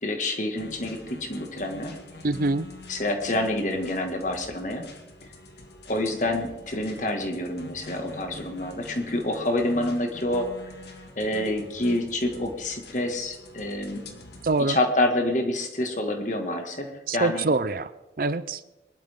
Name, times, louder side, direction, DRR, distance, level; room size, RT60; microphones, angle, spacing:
voice 1, 0.0-1.9 2.9-4.9 5.9-10.5 11.2-14.0 14.7-17.5, left 1 dB, 45° left, 4 dB, 2.0 m, -27 dB
sound 1, 0.5-14.6, left 2 dB, 70° left, 2.0 m, -45 dB
voice 2, 2.2-2.7 14.4-14.8 17.1-17.9 18.2-18.6, right 3 dB, 50° right, 15 dB, 0.5 m, -24 dB
23.0 x 12.0 x 3.7 m, 1.0 s
head